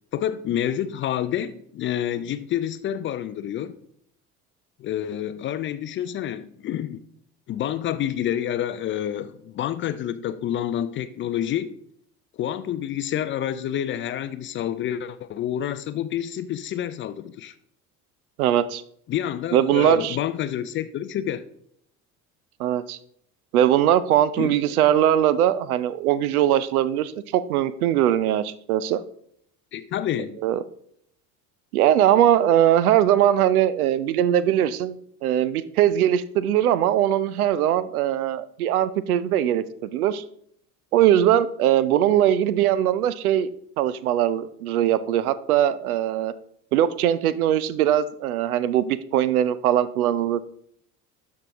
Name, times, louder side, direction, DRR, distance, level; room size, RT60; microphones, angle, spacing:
voice 1, 0.1-3.8 4.8-7.0 7.5-11.8 12.3-17.5 19.1-21.4 24.4-24.7 29.7-30.4, left 10 dB, 30° left, 0.4 m, -28 dB
voice 2, 18.4-18.8 19.5-20.2 22.6-23.0 23.5-29.0 30.4-30.6 31.7-35.0 35.2-40.2 40.9-43.5 43.8-46.3 46.7-50.4, right 11 dB, 70° right, 0.6 m, -21 dB
12.5 x 4.8 x 3.6 m
figure-of-eight pair, 60°, 46 cm